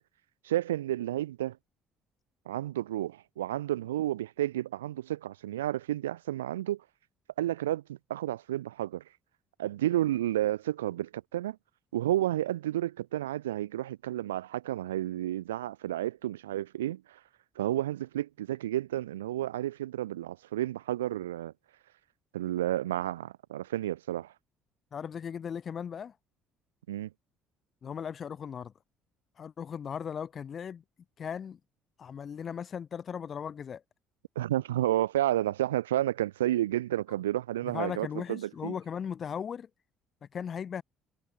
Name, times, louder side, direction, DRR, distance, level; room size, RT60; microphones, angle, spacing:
voice 1, 0.4-1.6 2.5-6.8 7.4-9.0 9.6-11.6 11.9-17.2 17.6-21.5 22.3-24.3 26.9-27.1 34.4-38.8, right 13 dB, 85° right, 1.8 m, -31 dB
voice 2, 24.9-26.1 27.8-28.7 29.4-30.8 31.2-31.6 32.0-33.8 37.6-39.7 40.2-40.8, left 7 dB, 45° left, 1.4 m, -37 dB
hypercardioid pair, 55°, 0 cm